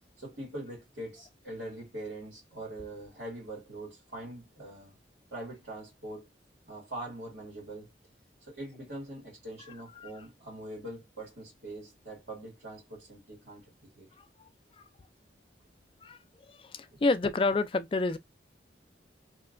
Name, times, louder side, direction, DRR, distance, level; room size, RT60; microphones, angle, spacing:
voice 1, 0.2-4.9 5.3-6.3 6.7-7.9 8.4-14.1, right 1 dB, 85° right, 1.8 m, -43 dB
voice 2, 14.2-14.5 16.0-16.2 16.5-18.2, left 3 dB, 30° left, 0.3 m, -29 dB
3.1 x 2.8 x 2.5 m
head